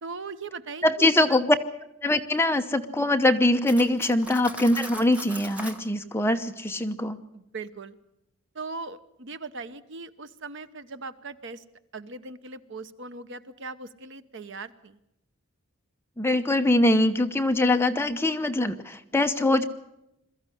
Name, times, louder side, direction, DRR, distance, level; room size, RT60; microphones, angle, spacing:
voice 1, 0.0-1.4 3.8-4.0 7.3-8.0 8.5-11.6 11.9-15.0, right 4 dB, 55° right, 12 dB, 0.9 m, -39 dB
voice 2, 0.8-1.6 2.0-7.2 16.2-19.6, left 1 dB, 10° left, 6 dB, 0.8 m, -23 dB
Cutlery silverware, 3.6-5.8, equal, 5° right, 1.3 m, -39 dB
22.0 x 14.0 x 10.0 m, 0.86 s
head